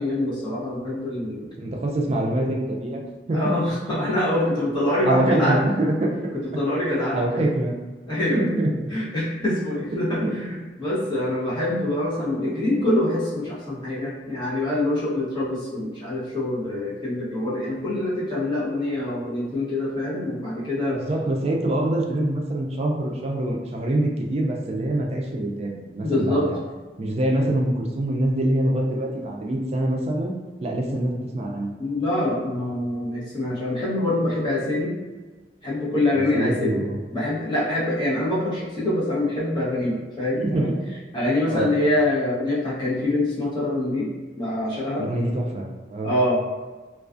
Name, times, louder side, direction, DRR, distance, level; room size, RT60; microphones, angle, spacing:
voice 1, 0.0-1.4 3.3-5.6 6.4-7.5 8.1-8.4 8.9-21.0 26.0-26.5 31.8-34.9 35.6-36.8 37.1-40.7 41.1-44.1 44.4-45.1 46.0-46.5, left 1 dB, 25° left, -9 dB, 0.8 m, -25 dB
voice 2, 1.6-3.0 3.3-3.5 5.0-6.2 7.1-7.8 8.3-8.7 9.9-10.3 12.6-12.8 20.9-26.6 27.0-30.3 30.6-31.7 36.1-37.0 40.4-40.8 41.5-41.7 45.0-46.1, right 1 dB, 35° right, 0 dB, 0.3 m, -25 dB
2.3 x 2.3 x 2.4 m, 1.3 s
head